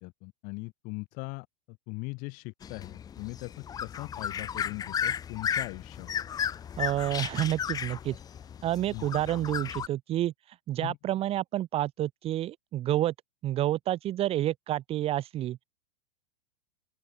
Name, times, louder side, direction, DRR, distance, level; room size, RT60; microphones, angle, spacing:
voice 1, 0.0-6.1 8.9-9.1 10.8-11.0, left 29 dB, 45° left, 2.7 m, -40 dB
sound 1, 2.6-9.9, left 8 dB, 20° left, 0.8 m, -34 dB
voice 2, 6.8-8.2 8.6-13.1 13.4-15.6, right 13 dB, 30° right, 1.2 m, -29 dB
open air
hypercardioid pair, 100°, 20 cm